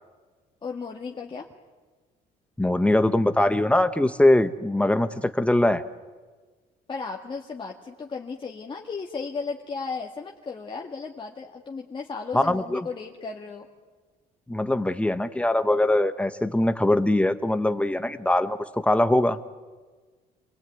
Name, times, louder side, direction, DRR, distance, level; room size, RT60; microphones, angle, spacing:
voice 1, 0.6-1.5 6.9-13.7, left 4 dB, 30° left, 0 dB, 1.9 m, -35 dB
voice 2, 2.6-5.8 12.3-12.9 14.5-18.6 18.8-19.4, left 1 dB, 5° left, 10 dB, 1.1 m, -22 dB
27.5 x 19.5 x 9.3 m, 1.4 s
cardioid pair, 110°, 17 cm